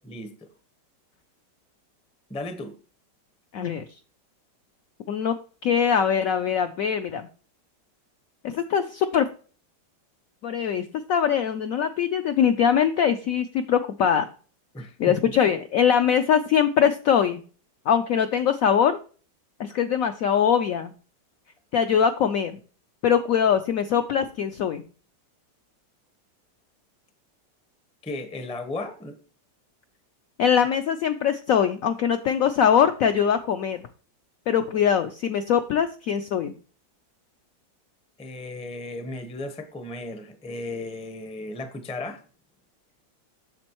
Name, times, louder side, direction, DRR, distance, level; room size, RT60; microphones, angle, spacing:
voice 1, 2.3-2.7 14.7-15.3 28.0-29.2 34.7-34.8 38.2-42.2, left 2 dB, 10° left, 8 dB, 0.3 m, -35 dB
voice 2, 3.5-3.9 5.1-5.3 5.6-7.3 8.4-9.3 10.4-14.3 15.0-17.4 17.9-19.0 19.6-20.9 21.7-22.5 23.0-24.8 30.4-33.8 34.5-36.5, left 8 dB, 75° left, 8 dB, 0.7 m, -22 dB
8.6 x 6.8 x 3.0 m, 0.39 s
omnidirectional pair, 1.9 m